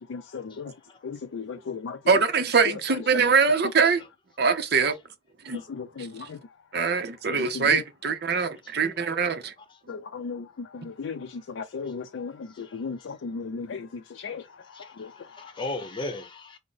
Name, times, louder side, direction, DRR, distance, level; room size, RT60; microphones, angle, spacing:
voice 1, 0.1-0.7 1.0-2.2 2.6-3.3 5.7-6.4 7.3-7.8 9.9-12.3 12.6-13.9 14.1-14.4 15.0-15.1, left 5 dB, 85° left, 0.4 m, -36 dB
voice 2, 2.1-4.0 4.4-4.9 5.4-5.6 6.0-6.1 6.7-9.5, right 5 dB, 55° right, 0.6 m, -23 dB
voice 3, 12.5-12.8 14.3-14.4 14.7-16.6, left 2 dB, 25° left, 0.7 m, -37 dB
3.6 x 2.0 x 3.9 m
head